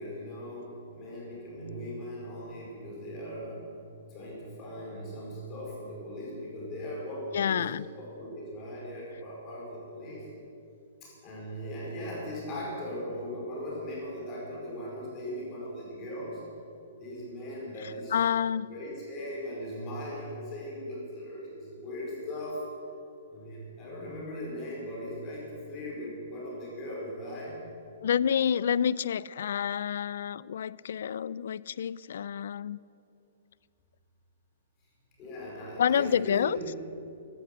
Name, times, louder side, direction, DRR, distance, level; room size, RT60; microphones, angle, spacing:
voice 1, 0.0-3.6 4.1-10.2 11.0-16.4 17.0-18.2 18.7-22.7 23.3-27.6 35.2-36.7, equal, 20° left, -4 dB, 4.5 m, -39 dB
voice 2, 7.3-7.9 17.8-18.7 28.0-32.8 35.8-36.6, left 8 dB, 60° left, 21 dB, 0.4 m, -28 dB
14.5 x 11.5 x 7.9 m, 2.6 s
hypercardioid pair, 175°, 0 cm